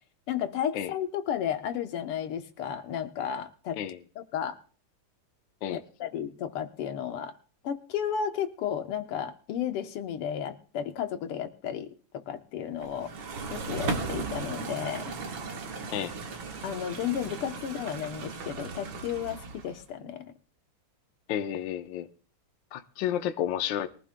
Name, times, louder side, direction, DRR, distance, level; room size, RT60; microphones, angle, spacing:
voice 1, 0.3-3.8 4.2-4.6 5.7-7.3 7.6-11.9 12.1-13.1 13.5-15.1 16.6-20.3, left 9 dB, 85° left, 1.9 m, -33 dB
sound 1, 12.8-19.8, right 4 dB, 65° right, 2.1 m, -36 dB
voice 2, 21.3-22.1 22.7-23.9, left 10 dB, 65° left, 1.4 m, -31 dB
22.5 x 15.0 x 2.2 m
omnidirectional pair, 2.4 m